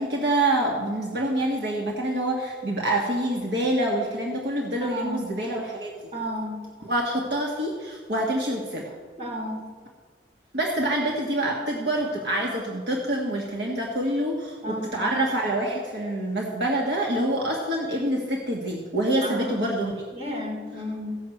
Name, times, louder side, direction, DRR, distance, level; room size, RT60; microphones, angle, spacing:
voice 1, 0.0-5.9 6.8-8.9 10.5-20.0, right 1 dB, 75° right, -1 dB, 1.6 m, -26 dB
voice 2, 4.8-5.3 6.1-6.6 9.2-9.6 14.6-15.1 19.2-19.6 20.1-21.2, equal, 35° right, -2 dB, 3.8 m, -32 dB
15.5 x 6.1 x 7.8 m, 1.5 s
head